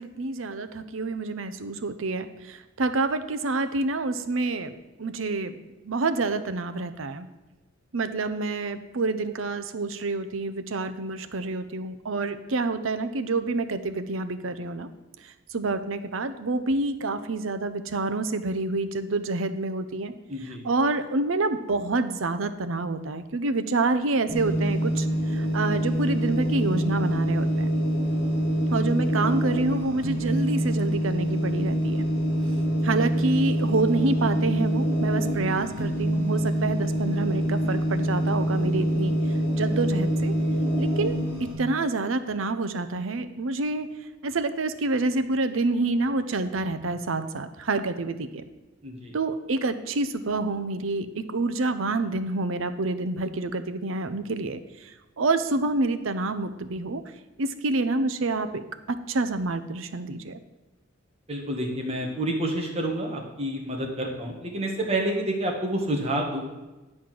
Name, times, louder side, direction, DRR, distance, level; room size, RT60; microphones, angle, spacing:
voice 1, 0.0-7.3 7.9-14.9 15.2-20.1 20.4-27.7 28.7-32.1 32.8-39.1 39.5-40.3 40.7-41.2 41.6-43.9 44.2-48.4 49.1-57.0 57.4-58.6 58.9-60.4, right 3 dB, 80° right, 11 dB, 0.7 m, -28 dB
voice 2, 20.3-20.6 48.8-49.1 61.3-66.4, right 1 dB, 30° right, 0 dB, 1.7 m, -29 dB
sound 1, 24.3-41.5, equal, 55° left, 3.8 m, -25 dB
10.0 x 4.3 x 7.5 m, 1.1 s
head